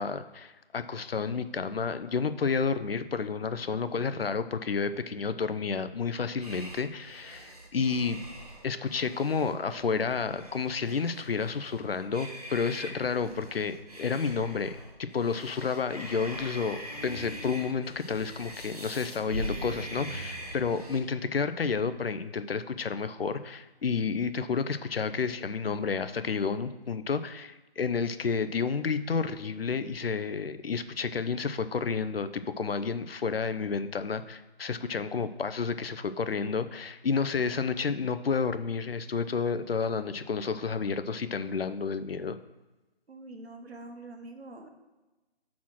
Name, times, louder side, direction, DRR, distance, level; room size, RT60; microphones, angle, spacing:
voice 1, 0.0-8.2 8.6-42.4, left 5 dB, 65° left, 12 dB, 0.5 m, -30 dB
sound 1, 6.4-21.0, right 1 dB, 40° right, 0.8 m, -42 dB
sound 2, 16.9-19.2, left 4 dB, 20° left, 1.2 m, -51 dB
voice 2, 43.1-44.7, right 2 dB, 80° right, 5 dB, 1.3 m, -45 dB
5.9 x 4.2 x 6.0 m, 1.1 s
figure-of-eight pair, 175°, 32 cm